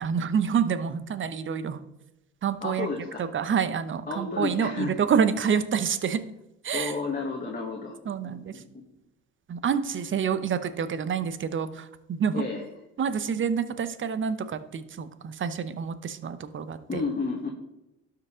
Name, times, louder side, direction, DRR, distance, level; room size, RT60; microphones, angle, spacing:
voice 1, 0.0-1.8 2.4-2.9 3.2-6.2 6.6-7.0 8.1-8.6 9.5-12.4 13.0-17.0, right 7 dB, 40° right, 13 dB, 0.8 m, -28 dB
voice 2, 2.6-3.3 4.1-4.9 6.7-8.0 8.2-8.9 12.3-12.6 16.9-17.5, left 4 dB, 30° left, 0 dB, 1.5 m, -32 dB
12.0 x 4.7 x 3.7 m, 0.91 s
supercardioid pair, 70°, 31 cm